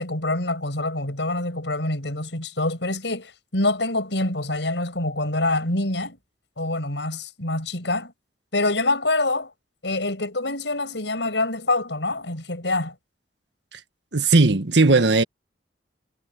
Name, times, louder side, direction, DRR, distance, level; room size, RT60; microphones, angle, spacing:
voice 1, 0.0-6.2 6.6-8.1 8.5-9.5 9.8-12.9, left 2 dB, 85° left, 6.3 m, -25 dB
voice 2, 14.1-15.2, right 3 dB, 75° right, 1.5 m, -17 dB
head